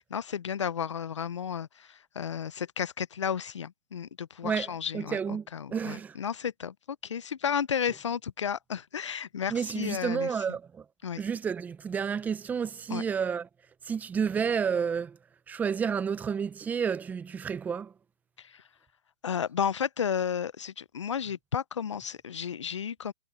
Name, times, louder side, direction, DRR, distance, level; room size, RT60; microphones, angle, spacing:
voice 1, 0.1-10.4 11.0-11.2 12.9-13.0 18.4-18.6 19.2-23.1, left 8 dB, 90° left, 0.6 m, -33 dB
voice 2, 4.4-6.2 9.5-10.8 11.2-13.5 13.8-15.2 15.5-17.9, right 6 dB, 10° right, 0.6 m, -30 dB
hypercardioid pair, 135°, 15 cm